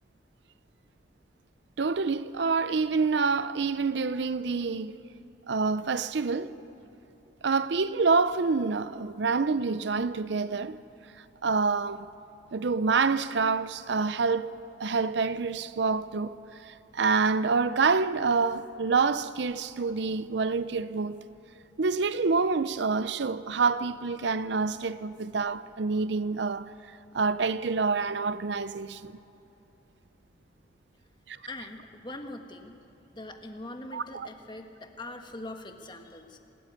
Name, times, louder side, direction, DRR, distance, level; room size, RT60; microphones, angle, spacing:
voice 1, 1.8-5.0 5.5-6.5 7.4-10.8 11.2-12.1 12.5-14.5 14.8-16.3 16.6-21.2 21.8-26.7 27.1-29.1 31.3-31.4 33.9-34.3, right 4 dB, 70° right, 0.6 m, -27 dB
voice 2, 31.5-32.7 33.1-36.4, left 2 dB, 25° left, 1.4 m, -42 dB
26.0 x 13.0 x 9.4 m
head